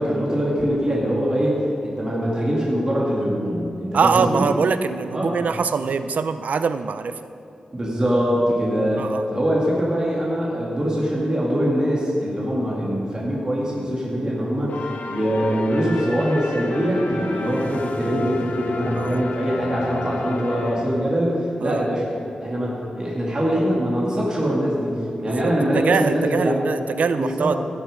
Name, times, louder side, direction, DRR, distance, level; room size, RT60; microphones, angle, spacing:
voice 1, 0.0-4.5 5.1-5.4 7.7-22.1 22.4-26.6 27.2-27.5, equal, 30° right, -5 dB, 2.3 m, -23 dB
voice 2, 3.9-7.2 9.0-9.3 18.9-19.2 21.6-21.9 25.2-27.6, right 5 dB, 80° right, 11 dB, 0.5 m, -23 dB
sound 1, 14.7-21.3, left 3 dB, 80° left, 0.9 m, -33 dB
15.5 x 7.5 x 5.1 m, 2.6 s
wide cardioid pair, 105°, 3 cm